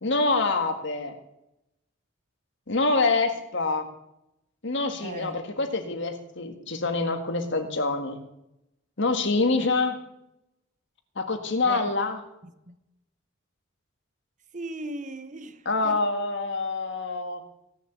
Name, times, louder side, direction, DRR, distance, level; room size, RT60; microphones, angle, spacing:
voice 1, 0.0-1.1 2.7-3.9 4.6-8.2 9.0-10.0 11.1-12.2 15.6-17.4, left 3 dB, 60° left, 1.8 m, -26 dB
voice 2, 5.0-5.4 9.6-9.7 11.6-11.8 12.7-12.8 14.5-16.0, right 2 dB, 40° right, 1.0 m, -37 dB
17.0 x 7.0 x 8.1 m
head